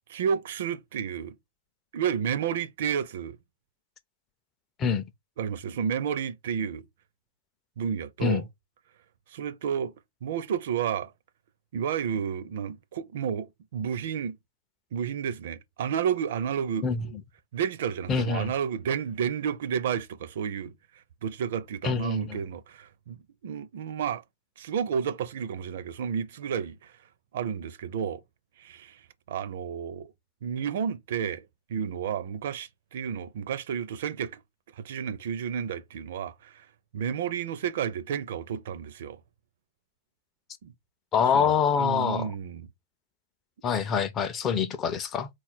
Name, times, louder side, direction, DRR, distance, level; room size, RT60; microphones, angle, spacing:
voice 1, 0.1-1.4 1.9-3.4 5.4-6.8 7.8-8.4 9.3-9.9 10.2-11.1 11.7-14.4 14.9-16.9 17.5-20.7 21.2-23.2 23.4-24.2 24.6-26.9 27.3-28.2 28.6-29.0 29.3-30.1 30.4-34.4 34.8-36.6 36.9-39.2 40.6-40.7 41.3-42.7, right 7 dB, 60° right, 0.5 m, -31 dB
voice 2, 18.1-18.5 21.8-22.4 41.1-42.3 43.6-45.3, left 6 dB, 20° left, 0.4 m, -25 dB
4.4 x 2.4 x 4.2 m
hypercardioid pair, 165°, 0 cm